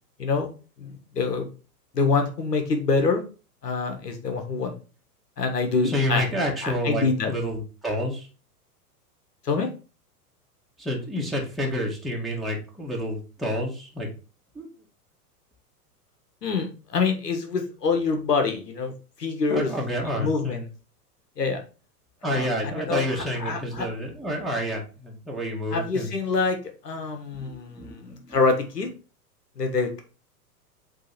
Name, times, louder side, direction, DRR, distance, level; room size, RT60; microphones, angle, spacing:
voice 1, 0.8-1.5 1.9-3.2 3.6-4.7 5.4-6.2 6.6-7.3 9.4-9.7 16.4-18.9 19.2-19.7 20.0-20.7 21.4-21.6 22.2-23.9 25.7-26.6 26.8-28.9 29.6-30.0, left 4 dB, 80° left, 5 dB, 1.6 m, -26 dB
voice 2, 5.8-8.3 10.8-14.1 14.5-14.7 19.5-20.6 22.2-26.1 27.3-28.4, equal, ahead, -3 dB, 1.8 m, -29 dB
8.2 x 3.4 x 4.2 m, 0.35 s
figure-of-eight pair, 100°, 48 cm